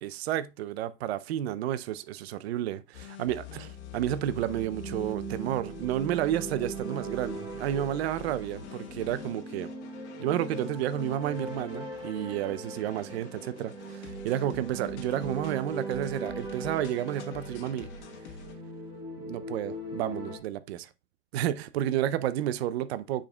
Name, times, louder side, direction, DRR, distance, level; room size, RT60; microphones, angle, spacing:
voice 1, 0.0-9.7 10.2-17.9 19.3-20.9 21.3-23.3, right 11 dB, 50° right, 0.5 m, -31 dB
sound 1, 2.9-18.5, left 6 dB, 55° left, 1.4 m, -47 dB
sound 2, 3.5-20.4, right 2 dB, 10° right, 1.0 m, -40 dB
8.7 x 5.0 x 2.2 m
supercardioid pair, 160°, 41 cm